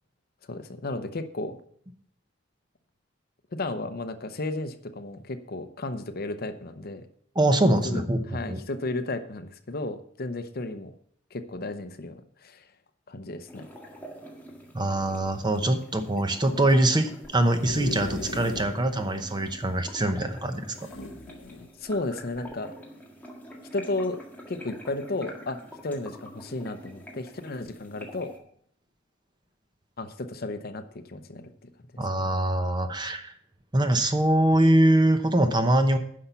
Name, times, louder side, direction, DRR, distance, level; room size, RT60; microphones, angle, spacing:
voice 1, 0.5-1.6 3.5-7.1 7.8-10.9 11.3-12.7 13.1-13.7 21.8-22.7 23.7-24.2 24.5-28.3 30.0-31.5, left 2 dB, 50° left, 9 dB, 0.7 m, -33 dB
voice 2, 7.4-8.6 14.7-20.9 32.0-33.3 33.7-36.0, right 1 dB, 25° right, 7 dB, 0.9 m, -23 dB
sound 1, 13.5-28.4, equal, 10° left, 1.7 m, -46 dB
sound 2, 17.2-18.8 19.2-19.3 19.5-19.6 20.7-21.7 22.3-22.5, left 2 dB, 85° left, 1.4 m, -38 dB
9.9 x 5.7 x 6.8 m, 0.63 s
head